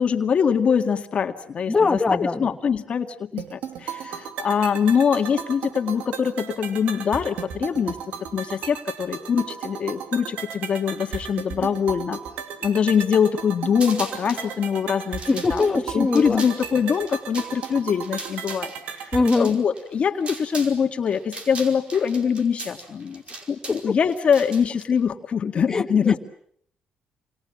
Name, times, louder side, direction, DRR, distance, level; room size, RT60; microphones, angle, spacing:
voice 1, 0.0-8.0 8.3-12.2 12.6-15.6 15.9-23.2 23.5-26.2, left 7 dB, 50° left, 6 dB, 1.9 m, -23 dB
voice 2, 1.7-2.5 15.3-16.4 19.1-19.5 25.7-26.2, left 3 dB, 25° left, 4 dB, 1.9 m, -22 dB
sound 1, 3.4-19.4, right 8 dB, 80° right, 2.5 m, -35 dB
sound 2, 13.7-14.5 15.0-20.8 21.1-24.8, right 3 dB, 45° right, 5.0 m, -38 dB
28.5 x 25.0 x 7.3 m, 0.66 s
cardioid pair, 85°, 3 cm